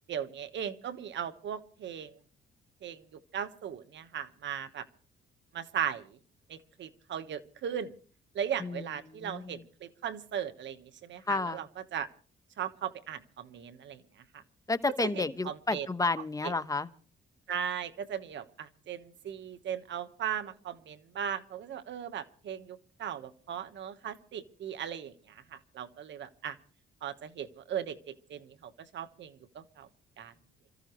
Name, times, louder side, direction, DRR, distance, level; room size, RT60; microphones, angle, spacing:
voice 1, 0.1-2.1 2.8-4.8 5.5-6.2 6.5-7.9 8.3-11.7 11.9-12.1 12.6-14.0 14.3-14.4 15.0-15.9 16.4-16.5 17.5-26.6 27.0-29.9 30.2-30.3, right 8 dB, 65° right, 1.4 m, -38 dB
voice 2, 8.6-9.6 11.3-11.6 14.7-16.9, left 3 dB, 15° left, 1.1 m, -31 dB
27.5 x 14.0 x 3.1 m
cardioid pair, 90°, 20 cm